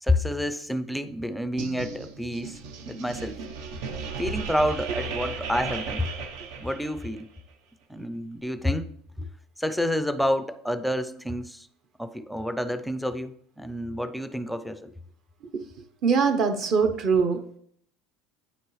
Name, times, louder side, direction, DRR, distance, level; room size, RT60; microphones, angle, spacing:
voice 1, 0.0-2.6 2.8-3.4 4.2-6.1 6.6-7.3 7.9-8.9 9.2-9.3 9.6-11.7 12.0-14.9, left 1 dB, ahead, 0.4 m, -29 dB
sound 1, 1.6-7.2, right 5 dB, 70° right, 0.9 m, -35 dB
voice 2, 16.0-17.6, right 5 dB, 40° right, 0.9 m, -23 dB
8.9 x 7.8 x 3.1 m
cardioid pair, 150°, 0 cm